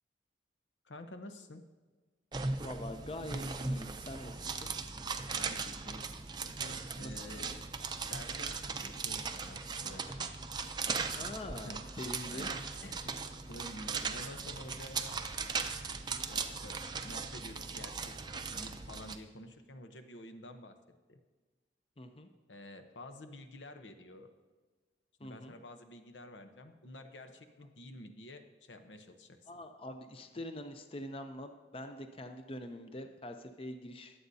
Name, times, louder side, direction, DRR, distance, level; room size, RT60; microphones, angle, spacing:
voice 1, 0.8-1.7 5.3-6.1 6.5-7.5 8.0-10.3 11.5-11.8 12.3-13.2 13.5-15.6 16.3-18.2 18.5-20.7 21.1-21.2 22.5-24.3 25.2-29.5, left 1 dB, 90° left, 7 dB, 0.9 m, -50 dB
sound 1, 2.3-19.2, right 4 dB, 25° right, 0.5 m, -38 dB
voice 2, 2.6-4.7 7.0-7.1 7.4-7.6 11.1-12.5 22.0-22.3 25.2-25.5 29.5-34.2, left 1 dB, 30° left, 7 dB, 0.6 m, -44 dB
21.0 x 7.9 x 2.7 m, 1.3 s
head